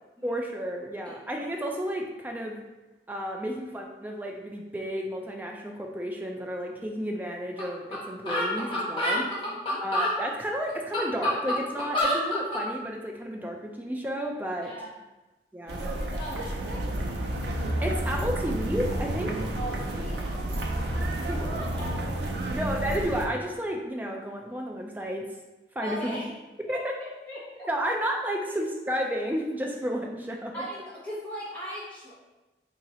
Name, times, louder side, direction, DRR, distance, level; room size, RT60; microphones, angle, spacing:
voice 1, 0.2-2.6 3.1-9.2 9.8-14.7 15.5-16.0 17.8-19.4 21.2-21.5 22.5-25.3 25.8-26.1 26.7-26.9 27.7-30.6, equal, 10° right, 1 dB, 0.3 m, -32 dB
sound 1, 7.6-7.7 7.9-8.0 8.3-10.1 10.7-12.6, left 1 dB, 30° left, 0.7 m, -27 dB
voice 2, 9.1-9.8 14.6-14.9 16.0-16.8 19.5-22.7 25.8-26.3 26.7-27.7 30.5-32.2, equal, 10° left, -11 dB, 1.3 m, -40 dB
sound 2, 15.7-23.3, right 1 dB, 70° right, 0.5 m, -30 dB
2.8 x 2.7 x 4.2 m, 1.1 s
head